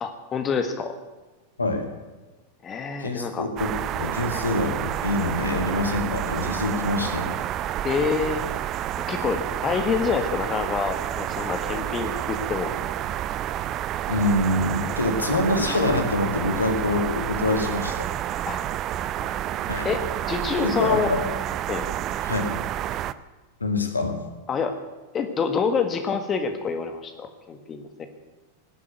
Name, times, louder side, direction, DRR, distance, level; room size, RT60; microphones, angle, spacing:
voice 1, 0.0-1.0 2.6-3.5 7.8-8.4 9.1-12.7 18.5-18.6 19.2-19.3 19.8-21.1 21.7-21.8 24.5-24.7 25.1-28.1, left 5 dB, 25° left, 7 dB, 1.6 m, -27 dB
voice 2, 3.0-3.7 3.9-7.4 14.1-18.1 19.7-19.9 20.5-21.2 22.2-22.6 23.6-24.2, left 2 dB, 80° left, 5 dB, 2.2 m, -25 dB
sound 1, 3.6-23.1, right 12 dB, 35° right, 0.6 m, -29 dB
18.5 x 8.4 x 9.4 m, 1.2 s
figure-of-eight pair, 90°, 0 cm